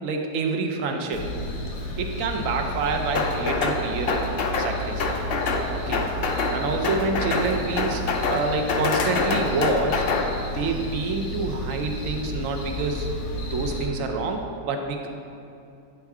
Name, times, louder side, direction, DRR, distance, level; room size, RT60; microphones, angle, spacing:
voice 1, 0.0-1.3 2.0-4.3 4.6-5.0 5.7-6.0 6.5-8.0 8.3-10.1 10.4-13.1 13.5-15.1, right 3 dB, 65° right, 3 dB, 0.9 m, -27 dB
sound 1, 1.1-13.9, left 1 dB, 85° left, 1.5 m, -32 dB
sound 2, 3.1-3.8 4.1-4.7 5.0-5.6 5.9-6.6 6.8-7.5 7.8-8.4 8.7-10.2, left 4 dB, 65° left, 0.6 m, -25 dB
8.9 x 4.4 x 3.6 m, 2.6 s
omnidirectional pair, 1.7 m